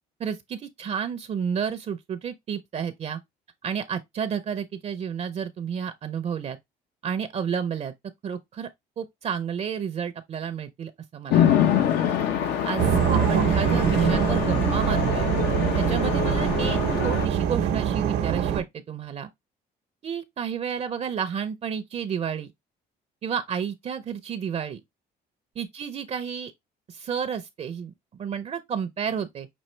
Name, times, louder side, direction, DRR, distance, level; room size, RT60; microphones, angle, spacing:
voice 1, 0.2-3.2 3.6-6.6 7.0-7.9 8.2-8.7 9.0-11.9 12.6-15.3 15.8-19.3 20.0-22.5 23.2-24.8 25.6-26.5 26.9-29.5, right 7 dB, 40° right, 0.5 m, -31 dB
Chatter / Traffic noise roadway noise / Train, 11.3-17.3, left 9 dB, 80° left, 0.9 m, -25 dB
sound 1, 12.8-18.6, right 8 dB, 80° right, 0.8 m, -24 dB
6.2 x 2.5 x 3.2 m
cardioid pair, 110°, 17 cm